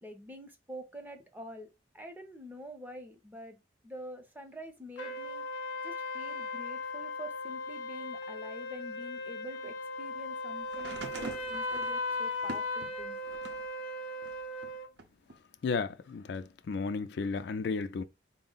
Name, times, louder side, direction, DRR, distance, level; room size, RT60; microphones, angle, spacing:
voice 1, 0.0-1.7 1.9-3.6 3.8-13.4, equal, 10° right, 0.6 m, -47 dB
sound 1, 5.0-14.9, left 2 dB, 75° left, 0.7 m, -37 dB
sound 2, 10.7-13.7 14.2-15.4 16.4-16.5, right 2 dB, 60° right, 0.6 m, -45 dB
voice 2, 15.6-18.0, left 4 dB, 60° left, 0.3 m, -33 dB
4.3 x 2.0 x 3.8 m
head